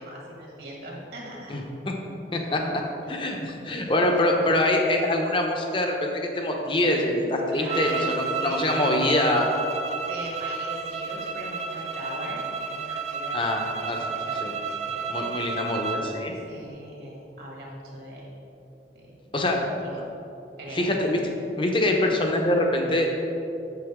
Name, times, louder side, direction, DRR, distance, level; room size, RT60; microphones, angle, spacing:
voice 1, 0.0-1.6 3.1-3.2 3.8-4.3 6.5-6.6 7.5-8.8 10.0-15.0 16.3-18.3 18.9-20.1 20.6-20.8, right 1 dB, 60° right, -3 dB, 1.8 m, -41 dB
voice 2, 2.3-2.8 3.1-9.5 13.3-14.0 14.4-14.5 15.1-16.3 19.3-19.6 20.7-21.2 21.6-23.1, left 1 dB, 30° left, 1 dB, 0.8 m, -24 dB
sound 1, 7.7-16.1, right 5 dB, 40° right, 0.5 m, -31 dB
8.0 x 6.7 x 3.6 m, 2.8 s
head